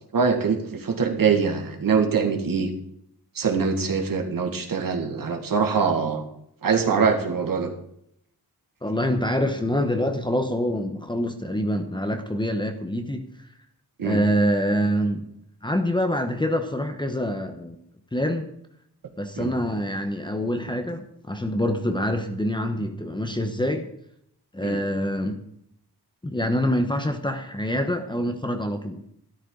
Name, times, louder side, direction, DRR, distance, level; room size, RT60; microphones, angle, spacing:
voice 1, 0.1-2.7 3.4-6.2 6.6-7.7 14.0-14.2 19.4-19.5 24.6-24.8, right 5 dB, 60° right, 3 dB, 1.9 m, -23 dB
voice 2, 8.8-13.3 14.0-15.2 15.6-17.8 18.1-18.5 19.2-23.9 24.5-25.4 26.2-29.0, equal, 10° left, 6 dB, 1.0 m, -25 dB
13.5 x 13.0 x 3.9 m, 0.74 s
wide cardioid pair, 180°, 39 cm